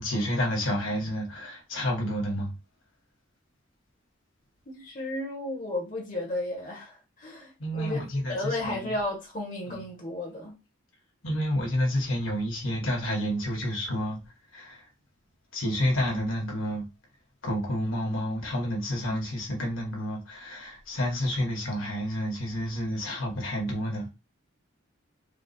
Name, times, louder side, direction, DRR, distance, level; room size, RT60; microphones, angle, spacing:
voice 1, 0.0-2.5 7.6-8.9 9.7-9.8 11.2-14.2 14.5-14.8 15.5-16.9 17.4-24.1, equal, 85° left, 1.5 m, -29 dB
voice 2, 4.6-8.0 8.3-10.6, left 1 dB, 40° left, 1.3 m, -33 dB
4.2 x 2.0 x 4.1 m
head